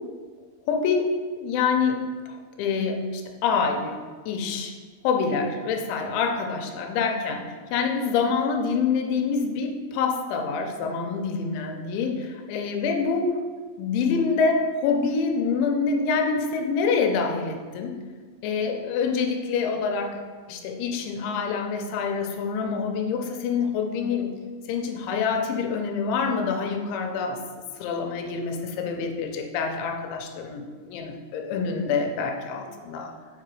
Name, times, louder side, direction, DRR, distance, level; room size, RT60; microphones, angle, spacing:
voice 1, 0.7-1.1 1.4-2.0 2.6-4.0 4.3-4.7 5.0-13.4 13.8-18.0 18.4-20.2 20.5-24.3 24.7-27.4 27.8-33.1, left 5 dB, 90° left, 3 dB, 3.0 m, -26 dB
8.1 x 3.8 x 4.8 m, 1.5 s
omnidirectional pair, 5.2 m